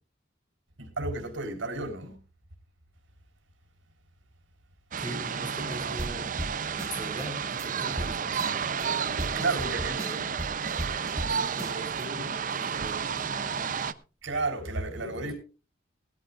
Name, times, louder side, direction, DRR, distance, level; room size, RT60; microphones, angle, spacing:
voice 1, 0.8-2.2 9.4-10.0 14.2-15.3, right 3 dB, 80° right, 3.7 m, -32 dB
sound 1, 4.9-13.9, right 6 dB, 40° right, 0.5 m, -31 dB
voice 2, 5.0-6.5 6.9-10.4 11.2-14.0 14.9-15.3, right 1 dB, 20° left, 4.1 m, -41 dB
sound 2, 6.0-6.1 6.4-6.5 6.8-7.2 7.6-7.7 8.0-8.1 8.4-8.8 9.2-11.3 11.6-12.0, equal, 15° right, 1.6 m, -35 dB
19.5 x 13.5 x 2.4 m
head